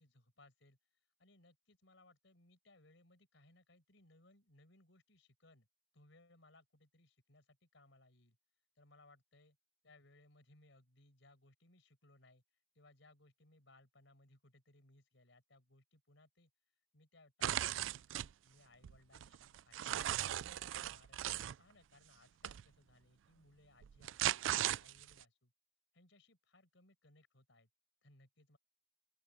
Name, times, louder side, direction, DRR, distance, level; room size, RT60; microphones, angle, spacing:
voice 1, 0.0-5.7 5.9-8.4 8.8-9.6 9.8-12.4 12.7-16.5 16.9-21.2 21.6-25.5 25.9-27.7 28.0-28.6, left 2 dB, 75° left, 5.3 m, -66 dB
sound 1, 17.4-18.3 18.8-21.5 22.4-22.6 23.8-25.2, right 12 dB, 80° right, 0.4 m, -37 dB
open air
head